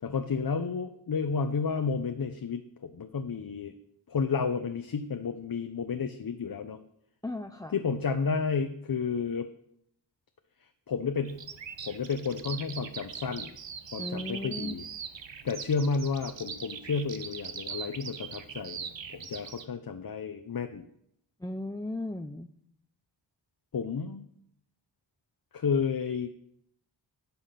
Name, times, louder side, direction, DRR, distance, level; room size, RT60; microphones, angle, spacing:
voice 1, 0.0-3.7 4.1-6.8 7.7-9.5 10.9-11.4 11.8-13.5 13.9-14.9 15.4-20.8 23.7-24.3 25.5-26.3, left 5 dB, 50° left, 7 dB, 0.8 m, -31 dB
voice 2, 7.2-7.7 14.0-14.7 21.4-22.5, left 1 dB, 10° left, 6 dB, 0.6 m, -36 dB
Bird vocalization bird call bird song, 11.3-19.6, right 6 dB, 75° right, 1.1 m, -41 dB
11.5 x 7.1 x 5.8 m, 0.73 s
cardioid pair, 55°, 45 cm